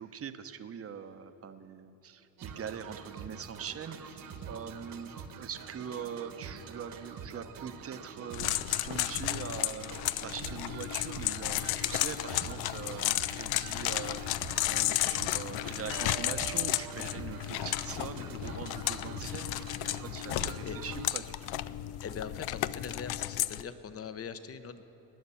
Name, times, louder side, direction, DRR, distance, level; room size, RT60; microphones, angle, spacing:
voice 1, 0.0-5.1 5.4-19.6 20.0-21.7, right 7 dB, 30° right, 9 dB, 0.9 m, -42 dB
sound 1, 2.4-21.1, right 6 dB, 50° right, 1.3 m, -46 dB
sound 2, 8.3-23.6, left 16 dB, 60° left, 0.5 m, -33 dB
sound 3, 15.9-19.4, right 11 dB, 75° right, 1.8 m, -49 dB
voice 2, 22.0-24.8, left 6 dB, 30° left, 11 dB, 0.9 m, -41 dB
19.0 x 9.5 x 7.0 m, 3.0 s
cardioid pair, 105°, 44 cm